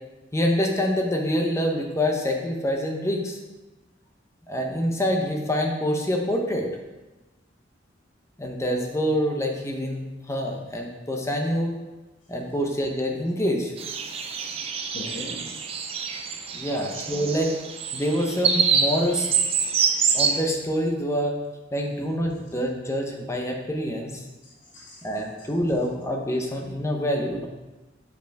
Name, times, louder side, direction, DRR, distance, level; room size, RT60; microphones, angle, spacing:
voice 1, 0.3-3.4 4.5-6.7 8.4-11.8 12.3-13.7 16.5-17.5 17.9-19.3 20.1-21.4 21.7-24.2 25.0-27.5, equal, 15° left, 1 dB, 0.7 m, -26 dB
sound 1, 13.8-20.4, right 6 dB, 30° right, 0.5 m, -26 dB
voice 2, 14.9-15.5 16.1-16.4 16.7-17.5 19.8-19.9 24.5-25.1, left 1 dB, 75° left, -4 dB, 1.5 m, -42 dB
6.8 x 5.2 x 3.4 m, 1.1 s
head